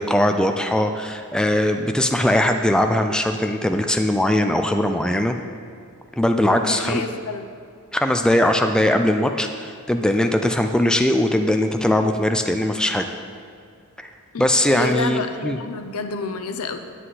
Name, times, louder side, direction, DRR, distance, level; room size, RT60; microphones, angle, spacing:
voice 1, 0.0-5.4 6.2-7.0 7.9-13.1 14.0-14.1 14.4-15.6, left 1 dB, 5° left, 5 dB, 0.4 m, -20 dB
voice 2, 6.6-7.4 14.3-14.5 14.8-16.8, left 4 dB, 75° left, 7 dB, 0.7 m, -29 dB
9.9 x 9.5 x 4.1 m, 2.2 s
head